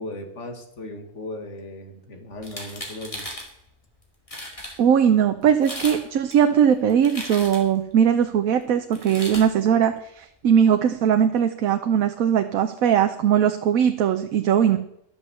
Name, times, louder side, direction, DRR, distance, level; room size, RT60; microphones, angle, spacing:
voice 1, 0.0-3.3 14.7-14.8, left 1 dB, 60° left, 4 dB, 2.1 m, -37 dB
sound 1, 2.4-3.5 4.0-4.1 4.3-4.8 5.5-6.0 6.3-7.8 8.9-9.5, left 1 dB, 25° left, 2.4 m, -36 dB
voice 2, 4.8-14.8, right 8 dB, 90° right, 7 dB, 1.1 m, -20 dB
11.0 x 7.2 x 6.8 m, 0.76 s
omnidirectional pair, 1.4 m